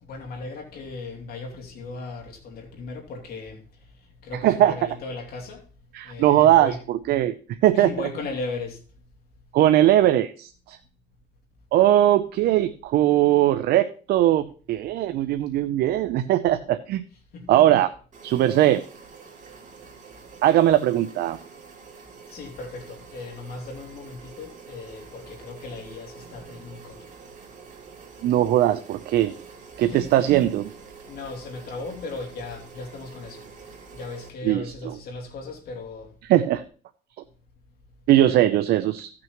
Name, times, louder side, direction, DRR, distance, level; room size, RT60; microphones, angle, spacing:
voice 1, 0.0-3.7 4.2-5.6 6.0-6.8 7.7-8.8 17.3-17.6 22.3-27.1 29.8-30.3 31.1-36.1, left 3 dB, 65° left, 2.8 m, -37 dB
voice 2, 4.4-4.7 5.9-7.3 7.6-7.9 9.5-10.8 11.7-17.0 17.5-17.9 18.2-18.8 20.4-21.4 28.2-29.3 29.8-30.7 34.4-34.6 36.3-36.6 38.1-39.1, right 13 dB, 70° right, 0.6 m, -20 dB
sound 1, 18.1-34.3, right 5 dB, 45° right, 2.7 m, -46 dB
16.0 x 6.1 x 3.0 m
cardioid pair, 110°, 17 cm